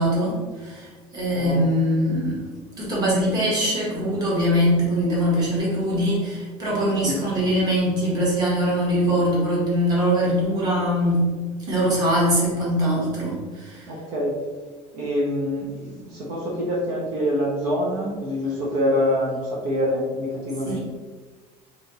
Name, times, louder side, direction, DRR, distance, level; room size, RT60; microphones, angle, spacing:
voice 1, 0.0-2.5 2.8-11.2 11.7-13.9 20.6-20.8, equal, 30° right, -6 dB, 1.3 m, -22 dB
voice 2, 1.3-1.7 7.0-7.2 13.9-14.3 14.9-20.8, equal, 60° right, -4 dB, 1.0 m, -25 dB
3.4 x 2.8 x 4.0 m, 1.4 s
cardioid pair, 170°, 14 cm